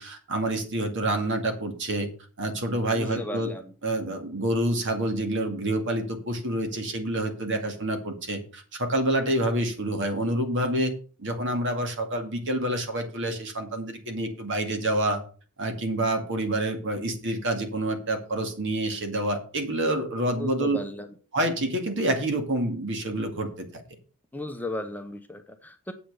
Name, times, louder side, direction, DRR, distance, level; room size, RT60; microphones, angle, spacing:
voice 1, 0.0-2.1 2.4-3.5 3.8-10.9 11.2-15.2 15.6-20.8 21.3-23.7, right 1 dB, 55° right, 5 dB, 2.2 m, -27 dB
voice 2, 2.9-3.7 20.4-21.1 24.3-25.9, left 1 dB, 10° left, 5 dB, 0.8 m, -35 dB
8.1 x 5.9 x 6.7 m, 0.39 s
head